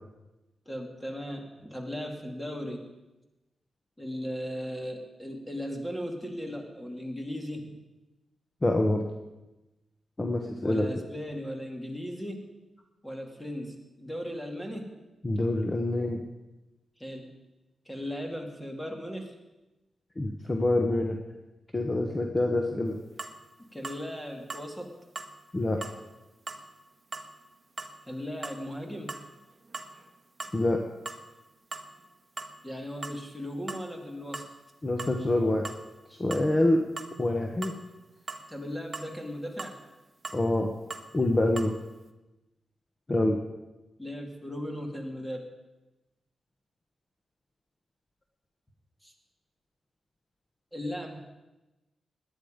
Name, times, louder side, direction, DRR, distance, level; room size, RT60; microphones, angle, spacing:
voice 1, 0.7-2.9 4.0-7.8 10.6-12.5 13.0-14.9 17.0-17.3 17.9-19.3 23.7-24.9 28.1-29.2 32.6-34.4 38.5-39.7 44.0-45.5 49.0-49.1 50.7-51.2, equal, 5° left, 3 dB, 2.3 m, -37 dB
voice 2, 8.6-9.0 10.2-10.9 15.2-16.2 20.2-21.2 21.7-23.0 25.5-25.8 30.5-30.8 34.8-35.6 36.2-36.8 37.2-37.7 40.3-40.7 41.1-41.7 43.1-43.4, left 1 dB, 25° left, 3 dB, 1.2 m, -26 dB
sound 1, 23.2-23.4 23.8-24.0 24.5-24.7 25.2-25.3 25.8-26.0 26.5-26.6 27.1-27.3 27.8-28.0 28.4-28.6 29.1-29.3 29.6-30.1 30.4-30.6 31.1-31.2 31.7-31.9 32.4-32.6 33.0-33.2 33.7-33.9 34.3-34.5 35.0-35.2 35.6-35.8 36.3-36.5 37.0-37.1 37.6-37.8 38.3-38.5 38.9-39.1 39.6-39.8 40.2-40.4 40.9-41.1 41.6-41.7, right 3 dB, 30° right, 1.2 m, -39 dB
18.0 x 11.0 x 5.2 m, 1.0 s
wide cardioid pair, 120°, 0 cm